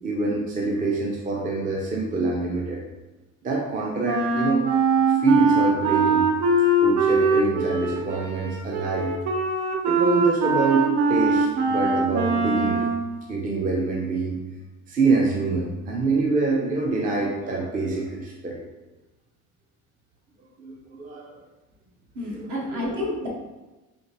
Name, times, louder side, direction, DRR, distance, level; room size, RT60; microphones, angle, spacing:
voice 1, 0.0-2.8 3.4-4.7 5.2-6.3 6.8-9.1 9.8-12.9 13.3-14.4 14.9-18.6 20.6-21.4 22.2-23.1, right 3 dB, 25° right, -2 dB, 0.5 m, -25 dB
Wind instrument woodwind instrument, 4.0-13.1, right 3 dB, 85° right, 0.6 m, -22 dB
voice 2, 22.1-23.3, left 1 dB, 65° right, -3 dB, 1.3 m, -30 dB
4.3 x 2.8 x 3.0 m, 1.1 s
cardioid pair, 150°, 32 cm